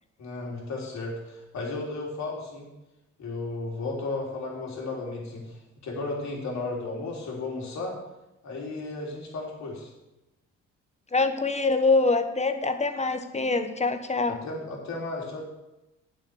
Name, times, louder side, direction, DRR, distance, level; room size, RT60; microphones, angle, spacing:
voice 1, 0.2-2.7 3.2-8.0 8.4-9.9 14.3-15.5, left 3 dB, 65° left, -2 dB, 3.7 m, -34 dB
voice 2, 11.1-14.4, left 3 dB, 20° left, 9 dB, 1.1 m, -24 dB
9.3 x 7.3 x 6.9 m, 0.95 s
cardioid pair, 90°, 30 cm